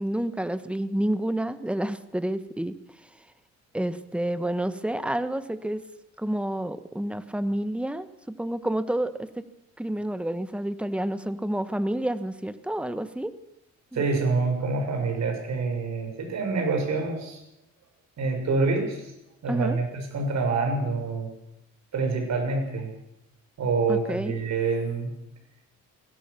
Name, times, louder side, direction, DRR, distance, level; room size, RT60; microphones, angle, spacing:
voice 1, 0.0-2.7 3.7-5.8 6.2-9.4 9.8-13.3 13.9-14.0 19.5-19.8 23.9-24.4, right 1 dB, 5° right, 12 dB, 1.5 m, -29 dB
voice 2, 13.9-17.4 18.2-19.1 19.4-21.3 21.9-22.9 23.6-25.1, right 3 dB, 65° right, 3 dB, 7.0 m, -26 dB
22.0 x 17.0 x 7.0 m, 0.86 s
cardioid pair, 90°, 30 cm